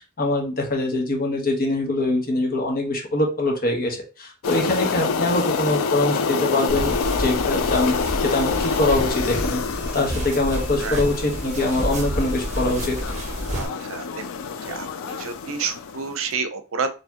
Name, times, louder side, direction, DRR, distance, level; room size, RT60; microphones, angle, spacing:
voice 1, 0.2-7.9 8.2-13.0, left 2 dB, 45° left, 1 dB, 1.2 m, -23 dB
sound 1, 4.4-16.2, left 5 dB, 90° left, 0.5 m, -27 dB
sound 2, 6.7-13.7, equal, 35° right, 1.1 m, -29 dB
voice 2, 13.5-14.2 14.6-16.9, right 5 dB, 80° right, 9 dB, 0.6 m, -29 dB
4.6 x 3.1 x 2.9 m, 0.33 s
head